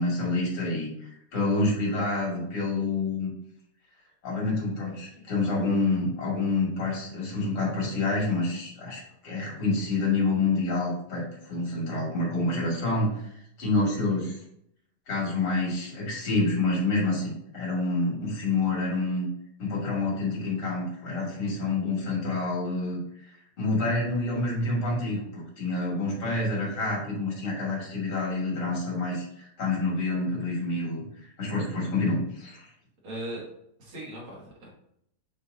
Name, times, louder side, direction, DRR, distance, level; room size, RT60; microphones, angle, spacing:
voice 1, 0.0-3.3 4.2-14.4 15.1-19.3 19.6-23.0 23.2-32.7, left 2 dB, 75° left, -4 dB, 3.2 m, -28 dB
voice 2, 33.0-33.5 33.8-34.7, right 1 dB, 70° right, -5 dB, 3.0 m, -38 dB
8.1 x 4.3 x 2.7 m, 0.74 s
omnidirectional pair, 2.4 m